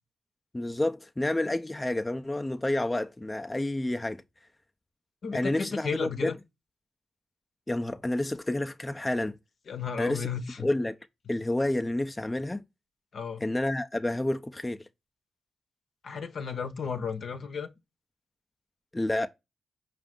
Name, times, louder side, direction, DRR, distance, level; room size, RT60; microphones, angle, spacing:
voice 1, 0.5-4.2 5.3-6.4 7.7-9.4 10.0-10.3 10.6-11.0 11.3-12.6 13.4-14.8 18.9-19.3, left 1 dB, 20° left, 0.4 m, -29 dB
voice 2, 5.2-6.4 9.7-10.7 13.1-13.5 16.0-17.7, left 6 dB, 65° left, 0.7 m, -34 dB
5.0 x 2.4 x 3.5 m
cardioid pair, 60°, 0 cm